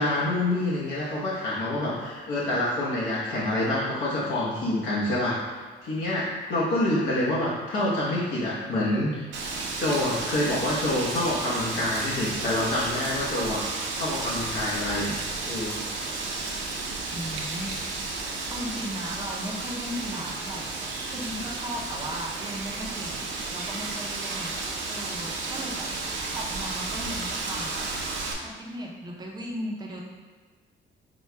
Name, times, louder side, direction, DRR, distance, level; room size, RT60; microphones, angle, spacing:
voice 1, 0.0-5.4 5.8-9.3 9.8-13.6 13.9-15.2 15.4-15.8, left 1 dB, 70° left, -8 dB, 1.0 m, -27 dB
Wind, 9.3-28.3, right 3 dB, 65° right, 0.7 m, -32 dB
voice 2, 17.1-18.1 18.5-20.8 21.1-24.6 24.9-27.9 28.4-30.0, equal, 20° right, -2 dB, 0.5 m, -36 dB
4.3 x 2.2 x 4.4 m, 1.5 s
cardioid pair, 175°, 20 cm